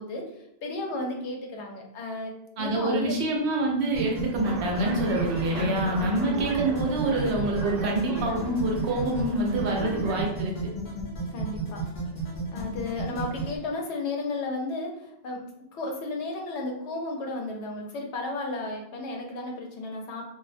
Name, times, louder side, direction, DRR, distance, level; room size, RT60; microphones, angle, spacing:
voice 1, 0.0-2.3 2.6-3.2 5.5-6.7 9.0-9.5 11.3-11.8 12.5-15.4 15.7-20.2, left 2 dB, 90° left, 1 dB, 0.9 m, -34 dB
voice 2, 2.6-10.7, right 2 dB, 75° right, 0 dB, 0.8 m, -26 dB
sound 1, 3.9-13.6, right 2 dB, 50° left, 0.6 m, -34 dB
sound 2, 4.4-10.1, right 2 dB, 55° right, 0.4 m, -36 dB
2.4 x 2.1 x 2.5 m, 0.80 s
omnidirectional pair, 1.1 m